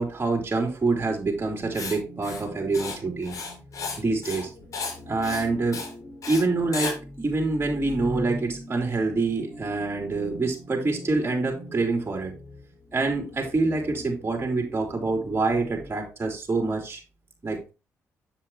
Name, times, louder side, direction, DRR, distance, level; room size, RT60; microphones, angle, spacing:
voice 1, 0.0-3.4 4.0-4.5 5.1-5.8 6.3-12.3 12.9-17.0 17.4-17.7, right 3 dB, 35° right, 2 dB, 3.5 m, -26 dB
sound 1, 1.0-15.9, equal, 25° left, 4.8 m, -42 dB
Writing, 1.7-1.9 2.2-2.4 2.7-2.9 3.2-4.0 4.2-4.5 4.7-4.9 5.2-5.4 5.7-5.9 6.2-6.4 6.7-6.9, left 4 dB, 55° left, 4.8 m, -33 dB
7.9 x 7.3 x 3.0 m, 0.30 s
supercardioid pair, 55°, 7 cm